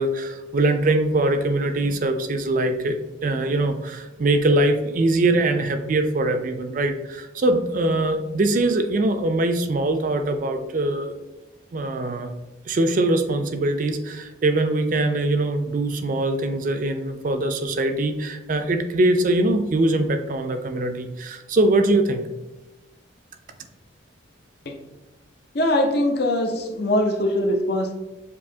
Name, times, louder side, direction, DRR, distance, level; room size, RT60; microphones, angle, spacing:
voice 1, 0.0-11.1 11.7-12.3 12.7-22.2, right 2 dB, 40° right, 7 dB, 0.4 m, -22 dB
voice 2, 25.5-27.9, left 1 dB, 50° left, 2 dB, 0.6 m, -22 dB
7.0 x 2.7 x 2.7 m, 1.0 s
head